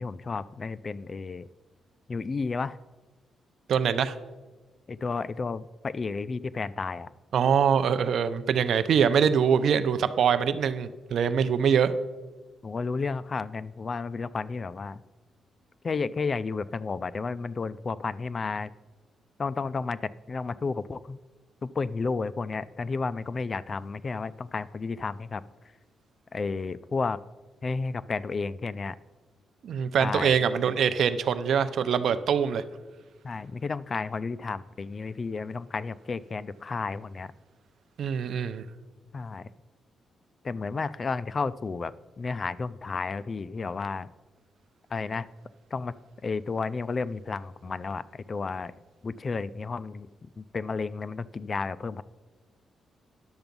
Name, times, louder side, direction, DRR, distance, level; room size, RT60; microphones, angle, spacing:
voice 1, 0.0-1.5 2.1-2.8 4.9-7.1 12.6-15.0 15.8-18.7 19.4-21.2 21.6-25.4 26.3-27.2 27.6-29.0 30.0-30.4 33.2-37.3 39.1-39.5 40.4-44.1 44.9-45.3 45.7-45.9 46.2-48.7 49.0-50.1 50.4-52.0, left 4 dB, 35° left, 18 dB, 0.4 m, -32 dB
voice 2, 3.7-4.1 7.3-11.9 29.6-32.6 38.0-38.6, right 7 dB, 70° right, 11 dB, 0.6 m, -24 dB
10.5 x 6.9 x 5.3 m, 1.3 s
cardioid pair, 100°, 0 cm